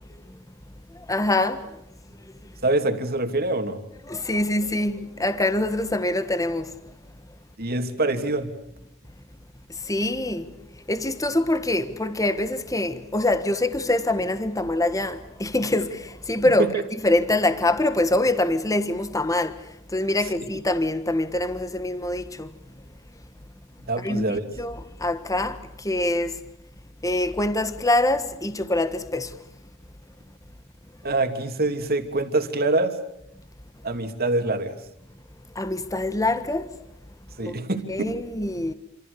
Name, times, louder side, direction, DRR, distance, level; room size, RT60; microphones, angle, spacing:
voice 1, 0.9-1.7 4.1-6.7 9.8-10.5 10.9-16.7 17.0-19.6 19.9-22.5 24.0-26.4 27.0-29.3 35.5-36.7 37.4-37.6 37.9-38.7, left 1 dB, 15° left, 1.4 m, -24 dB
voice 2, 2.6-3.8 7.6-8.5 16.6-16.8 23.9-24.4 31.0-33.0 33.8-34.8 37.4-38.2, right 2 dB, 45° right, 2.8 m, -25 dB
27.5 x 27.0 x 6.9 m
head